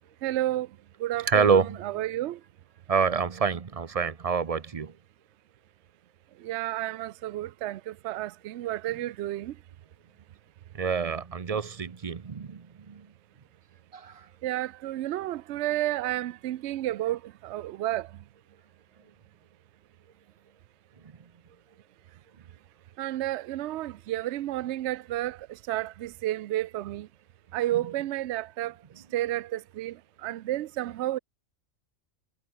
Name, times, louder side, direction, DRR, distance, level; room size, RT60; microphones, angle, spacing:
voice 1, 0.2-1.5 1.8-2.4 6.4-9.6 14.4-18.2 23.0-27.1 27.5-28.8 29.1-31.2, right 14 dB, 70° right, 0.8 m, -31 dB
voice 2, 1.2-1.8 2.9-4.9 8.9-9.0 10.7-13.1 13.9-14.3 27.7-27.8, right 6 dB, 35° right, 0.7 m, -27 dB
omnidirectional pair, 1.3 m